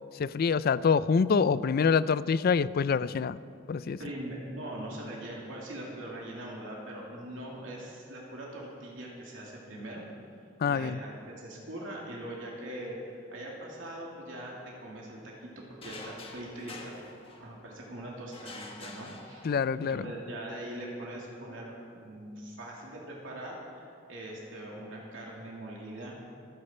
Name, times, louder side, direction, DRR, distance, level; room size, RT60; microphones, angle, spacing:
voice 1, 0.1-3.4 3.7-4.0 10.6-11.0 19.4-20.1, left 5 dB, 50° left, 17 dB, 0.4 m, -26 dB
voice 2, 4.0-10.0 10.7-16.9 17.4-19.5 19.8-26.2, right 1 dB, 75° right, -3 dB, 2.7 m, -42 dB
sound 1, 15.8-17.8 18.3-19.9, left 3 dB, 30° left, 1.5 m, -47 dB
26.0 x 9.8 x 4.4 m, 2.4 s
head